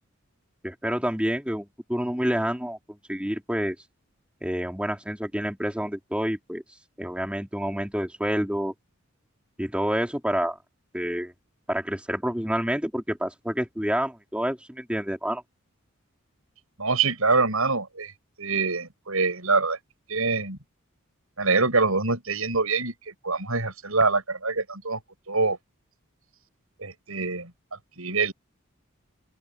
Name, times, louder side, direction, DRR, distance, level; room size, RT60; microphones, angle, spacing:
voice 1, 0.6-3.8 4.4-6.6 7.0-8.7 9.6-10.6 10.9-11.3 11.7-15.4, equal, 5° right, 3.9 m, -28 dB
voice 2, 16.8-18.1 18.4-19.8 20.1-20.6 21.4-22.9 23.2-25.0 25.3-25.6 26.8-27.5 28.0-28.3, right 4 dB, 85° right, 7.1 m, -24 dB
open air
head